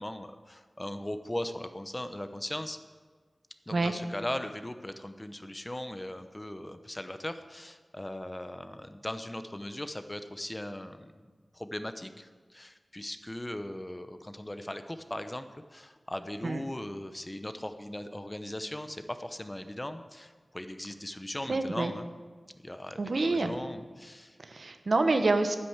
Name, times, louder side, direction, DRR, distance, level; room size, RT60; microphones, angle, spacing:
voice 1, 0.0-2.8 3.7-11.3 11.5-22.1 22.6-24.4, left 1 dB, 20° left, 9 dB, 0.8 m, -39 dB
voice 2, 21.5-21.9 23.0-23.6 24.4-25.6, right 3 dB, 70° right, 7 dB, 1.0 m, -27 dB
10.0 x 9.1 x 8.1 m, 1.5 s
wide cardioid pair, 70°, 0 cm